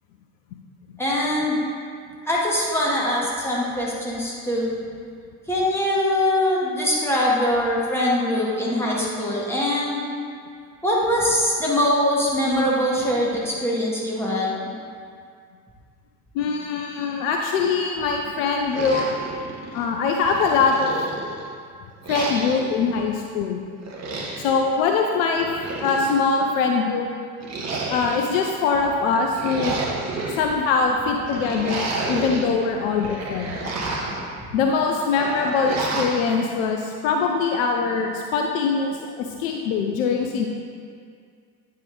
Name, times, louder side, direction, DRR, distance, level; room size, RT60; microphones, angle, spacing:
voice 1, 1.0-1.6 2.2-4.7 5.5-10.0 10.8-14.7 33.8-33.9 34.4-34.5, left 1 dB, 5° left, -5 dB, 1.7 m, -22 dB
voice 2, 16.3-19.1 19.7-20.9 22.1-23.6 24.4-25.5 25.8-27.1 27.9-29.7 30.3-33.5 34.5-40.5, left 5 dB, 60° left, 2 dB, 0.6 m, -22 dB
sound 1, 18.7-19.8 20.3-21.5 22.0-22.8 23.8-24.6 25.4-26.4 27.4-28.4 29.2-30.4 31.3-32.5 32.9-34.2 35.1-36.2, right 3 dB, 35° right, 1.1 m, -30 dB
8.7 x 4.2 x 3.7 m, 2.2 s
figure-of-eight pair, 60°, 44 cm